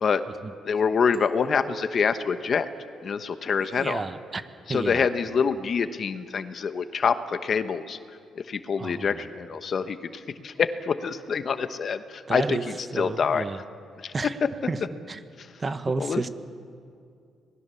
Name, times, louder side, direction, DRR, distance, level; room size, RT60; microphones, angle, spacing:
voice 1, 0.6-2.7 3.0-4.0 4.7-8.0 8.3-12.6 13.0-13.5 14.0-14.1 15.4-15.5 16.0-16.2, left 6 dB, 50° left, 11 dB, 1.1 m, -26 dB
sound 1, 1.1-3.5, equal, 5° right, 2.6 m, -42 dB
voice 2, 3.7-4.4 4.7-5.1 8.8-9.2 12.3-12.6 12.9-13.6 14.1-14.4 14.7-14.8 15.1-15.2 15.6-16.3, right 3 dB, 30° right, 11 dB, 1.2 m, -31 dB
25.5 x 20.0 x 7.1 m, 2.3 s
cardioid pair, 90°, 0 cm